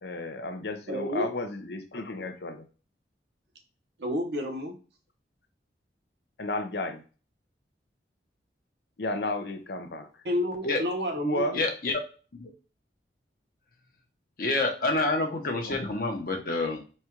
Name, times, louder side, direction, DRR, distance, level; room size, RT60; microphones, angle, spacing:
voice 1, 0.0-2.6 6.4-7.0 9.0-10.1 11.2-11.6 15.6-15.8, left 2 dB, 70° left, 7 dB, 0.6 m, -33 dB
voice 2, 0.9-1.3 4.0-4.7 10.2-11.6, left 1 dB, 75° right, 2 dB, 1.1 m, -30 dB
voice 3, 11.5-11.9 12.3-12.5 14.4-16.8, left 2 dB, 50° left, 1 dB, 1.0 m, -27 dB
4.2 x 2.4 x 4.5 m, 0.36 s
head